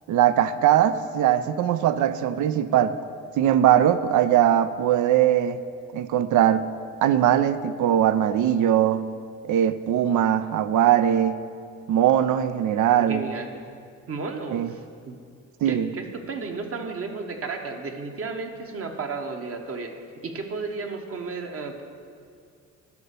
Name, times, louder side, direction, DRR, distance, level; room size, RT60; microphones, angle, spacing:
voice 1, 0.1-3.0 3.4-5.6 5.9-6.7 7.0-9.0 9.5-11.4 11.9-13.3 14.5-14.7 15.6-15.9, right 10 dB, 80° right, 13 dB, 0.6 m, -20 dB
voice 2, 13.1-13.5 14.1-14.6 15.1-15.2 15.7-19.9 20.2-21.8, right 4 dB, 50° right, 4 dB, 1.2 m, -33 dB
12.0 x 5.7 x 6.8 m, 2.3 s
cardioid pair, 90°, 30 cm